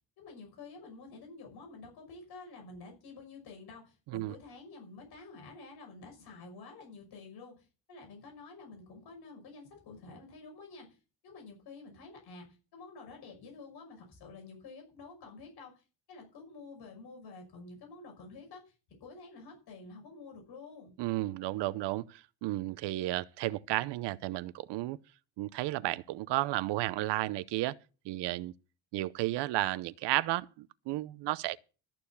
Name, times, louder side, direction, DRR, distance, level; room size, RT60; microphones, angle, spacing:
voice 1, 0.2-11.0 11.2-18.7 19.0-20.9, left 3 dB, 60° left, 6.0 m, -50 dB
voice 2, 21.0-25.0 25.4-27.8 28.0-28.5 28.9-31.6, right 17 dB, 70° right, 0.8 m, -33 dB
13.5 x 7.0 x 7.0 m
cardioid pair, 140°, 43 cm